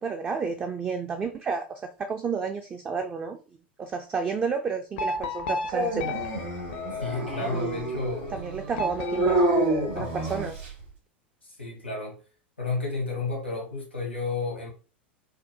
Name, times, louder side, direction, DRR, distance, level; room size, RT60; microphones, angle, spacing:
voice 1, 0.0-3.4 3.8-6.2 7.4-7.9 8.3-9.4 9.9-10.5, right 5 dB, 20° right, 0.4 m, -31 dB
sound 1, 5.0-7.6 8.7-10.5, left 2 dB, 60° left, 0.5 m, -34 dB
Dog, 5.7-10.8, right 1 dB, 60° right, 1.8 m, -28 dB
voice 2, 7.0-8.4 9.9-10.3 11.4-12.2 12.6-14.7, left 3 dB, 90° left, 1.0 m, -32 dB
4.8 x 2.2 x 2.7 m
figure-of-eight pair, 85°, 6 cm